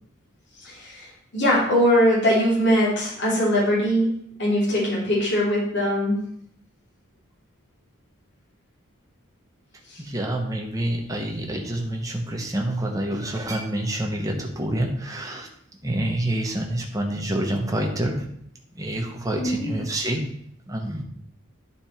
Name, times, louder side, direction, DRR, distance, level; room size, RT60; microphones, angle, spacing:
voice 1, 0.6-4.1 4.4-6.3 9.9-10.0 19.4-19.8, equal, 55° left, -6 dB, 2.9 m, -21 dB
voice 2, 10.0-15.5 15.8-18.2 18.7-20.2 20.7-21.0, right 1 dB, 15° right, 1 dB, 1.1 m, -27 dB
10.5 x 4.3 x 4.4 m, 0.70 s
head